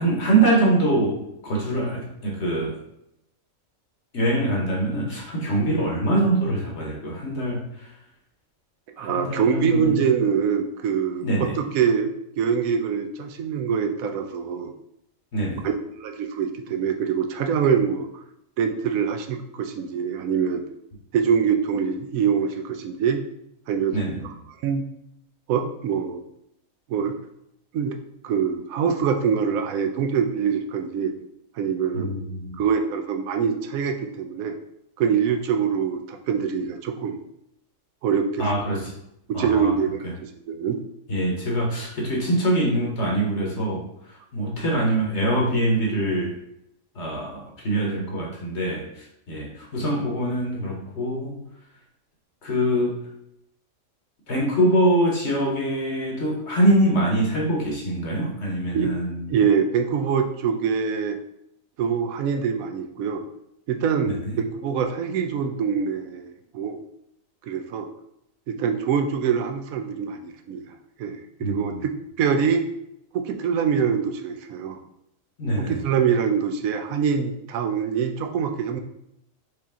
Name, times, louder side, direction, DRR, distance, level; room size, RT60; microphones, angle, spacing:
voice 1, 0.0-2.7 4.1-7.9 9.0-10.0 11.2-11.6 15.3-15.7 23.9-24.3 31.9-32.6 38.4-38.9 39.3-39.7 41.1-43.8 44.1-46.3 46.9-51.4 52.4-53.0 54.3-59.3 64.1-64.4 71.4-71.8 75.4-75.8, right 1 dB, 55° left, -1 dB, 1.2 m, -24 dB
voice 2, 9.0-14.7 15.6-15.7 16.0-18.2 18.6-20.6 21.1-23.2 23.7-24.0 24.6-24.8 25.5-26.2 26.9-27.2 27.7-28.0 28.2-31.1 31.6-32.1 32.6-34.6 35.0-37.2 38.0-38.5 39.3-40.8 58.7-58.9 59.3-61.2 61.8-63.2 63.7-66.8 67.4-67.9 68.5-70.6 71.0-71.9 72.2-72.7 73.1-74.8 75.6-78.8, right 7 dB, 85° right, 6 dB, 1.0 m, -24 dB
4.8 x 3.0 x 3.6 m, 0.79 s
omnidirectional pair, 1.4 m